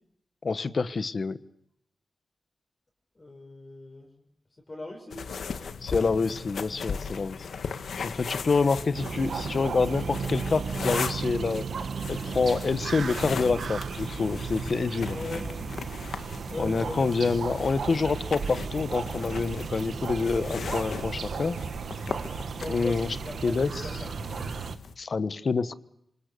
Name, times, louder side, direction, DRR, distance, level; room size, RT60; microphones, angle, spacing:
voice 1, 0.4-1.4 5.8-7.4 8.0-11.7 12.1-15.2 16.6-21.6 22.7-23.2 23.4-24.0 25.0-25.7, left 4 dB, 50° left, 13 dB, 1.3 m, -27 dB
voice 2, 3.2-4.1 4.7-5.2 15.1-15.5 16.5-17.1 22.6-24.3, left 2 dB, 30° left, 0 dB, 5.5 m, -39 dB
sound 1, 5.1-24.9, left 5 dB, 85° left, 1.8 m, -38 dB
sound 2, 8.9-24.8, right 5 dB, 75° right, 1.4 m, -34 dB
27.0 x 27.0 x 6.9 m, 0.78 s
wide cardioid pair, 120°, 0 cm